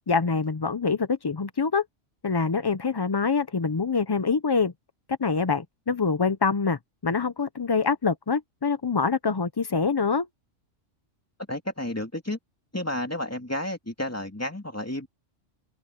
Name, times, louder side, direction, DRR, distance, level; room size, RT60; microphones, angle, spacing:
voice 1, 0.1-1.8 2.2-4.7 5.1-10.3, left 5 dB, 40° left, 0.3 m, -25 dB
voice 2, 11.5-12.4 12.7-15.1, left 1 dB, 10° left, 2.4 m, -31 dB
open air
omnidirectional pair, 1.3 m